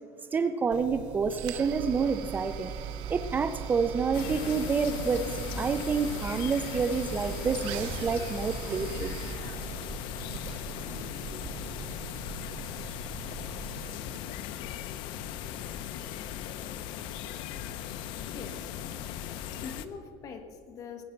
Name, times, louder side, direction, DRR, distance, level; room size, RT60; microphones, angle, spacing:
voice 1, 0.3-2.7 3.1-9.1 11.3-11.4, right 5 dB, 20° right, 10 dB, 0.4 m, -28 dB
sound 1, 0.7-14.2, right 8 dB, 75° right, 0.8 m, -40 dB
sound 2, 4.1-19.9, left 10 dB, 65° left, 0.7 m, -38 dB
voice 2, 18.3-18.8 19.5-21.0, left 5 dB, 40° left, 6 dB, 1.4 m, -43 dB
19.0 x 8.5 x 5.9 m, 2.4 s
cardioid pair, 160°, 9 cm